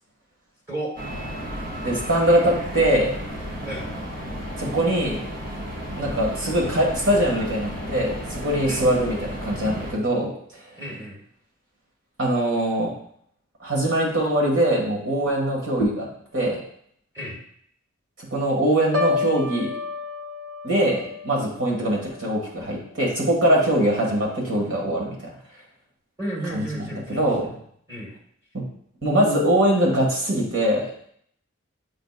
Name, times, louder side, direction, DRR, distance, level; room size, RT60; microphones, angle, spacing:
sound 1, 1.0-9.9, equal, 45° right, 0.9 m, -33 dB
voice 1, 1.8-3.1 4.6-5.2 6.0-10.3 12.2-12.9 13.6-16.6 18.3-19.7 20.6-25.2 26.5-26.6 26.9-27.5 29.0-30.9, right 1 dB, 70° right, -2 dB, 2.0 m, -22 dB
voice 2, 10.8-11.2 17.1-17.4 26.2-27.6 27.9-28.1, right 1 dB, 15° right, -4 dB, 1.4 m, -33 dB
Piano, 18.9-22.9 23.3-23.7, left 4 dB, 85° right, 0.8 m, -31 dB
7.8 x 5.1 x 2.5 m, 0.65 s
head